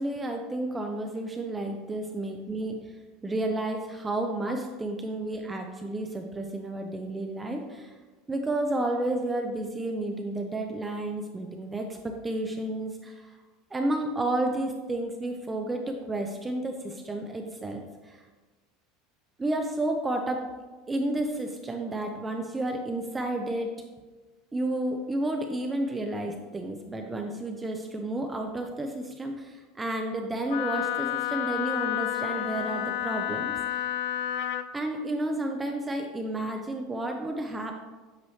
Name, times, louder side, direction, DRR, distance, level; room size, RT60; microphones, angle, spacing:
voice 1, 0.0-2.9 3.2-7.9 8.3-13.4 13.7-18.2 19.4-20.5 20.9-23.7 24.5-33.9 34.7-37.8, right 1 dB, 10° right, 3 dB, 0.4 m, -31 dB
Wind instrument woodwind instrument, 30.5-34.7, left 13 dB, 65° left, 0.3 m, -30 dB
8.2 x 4.6 x 3.2 m, 1.3 s
supercardioid pair, 155°, 0 cm